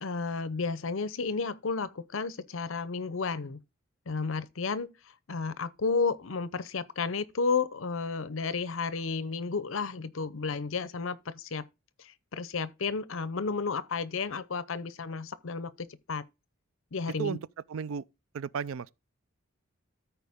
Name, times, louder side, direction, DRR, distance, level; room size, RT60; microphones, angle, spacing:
voice 1, 0.0-3.6 4.1-4.9 5.3-11.6 12.0-16.2 16.9-17.4, left 4 dB, 75° left, 0.7 m, -32 dB
voice 2, 17.7-18.0 18.3-18.9, right 7 dB, 80° right, 0.4 m, -33 dB
14.0 x 4.6 x 3.6 m
head